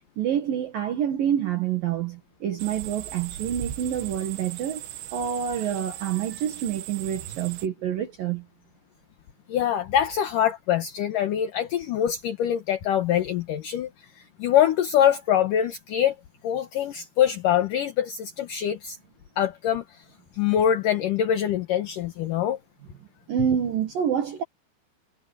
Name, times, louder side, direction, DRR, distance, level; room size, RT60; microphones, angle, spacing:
voice 1, 0.2-4.8 5.1-8.4 23.3-24.4, right 9 dB, 60° right, 3.0 m, -27 dB
sound 1, 2.6-7.7, right 12 dB, 80° right, 3.6 m, -38 dB
voice 2, 9.5-14.1 14.4-16.2 16.4-19.0 19.4-20.0 20.3-22.6, left 10 dB, 65° left, 2.2 m, -24 dB
omnidirectional pair, 5.2 m